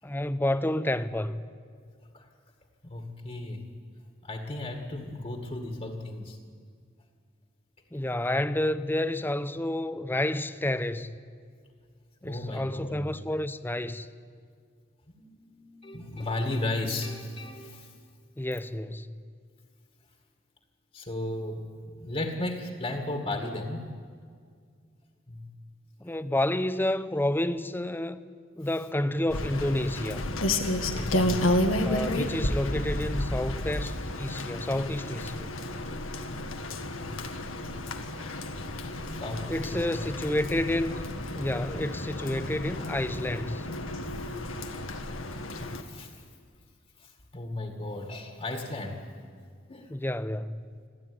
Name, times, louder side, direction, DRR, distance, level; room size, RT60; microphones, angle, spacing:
voice 1, 0.0-1.4 7.9-11.2 12.2-14.1 18.4-19.2 26.0-28.2 28.6-30.2 31.8-35.5 39.5-41.0 41.3-43.6 49.9-50.6, left 1 dB, 10° left, 0.7 m, -30 dB
voice 2, 2.8-3.6 4.2-6.4 12.2-13.1 15.1-17.9 20.9-23.9 25.3-25.5 30.9-31.5 39.1-40.1 44.0-44.2 45.5-46.3 47.0-49.1 49.7-49.9, left 2 dB, 35° left, 2.0 m, -35 dB
Rain, 29.3-45.8, left 1 dB, 85° left, 1.7 m, -31 dB
26.5 x 14.0 x 9.7 m
head